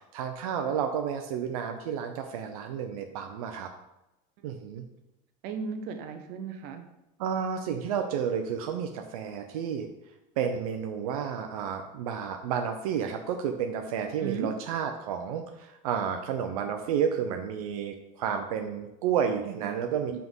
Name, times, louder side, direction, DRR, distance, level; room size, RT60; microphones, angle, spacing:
voice 1, 0.0-3.7 4.4-4.8 7.2-9.9 10.4-20.2, right 7 dB, 85° right, 5 dB, 0.7 m, -31 dB
voice 2, 5.4-6.8 14.2-14.6 20.1-20.2, right 5 dB, 60° right, 6 dB, 0.9 m, -35 dB
5.8 x 3.8 x 5.4 m, 0.93 s
supercardioid pair, 125°, 18 cm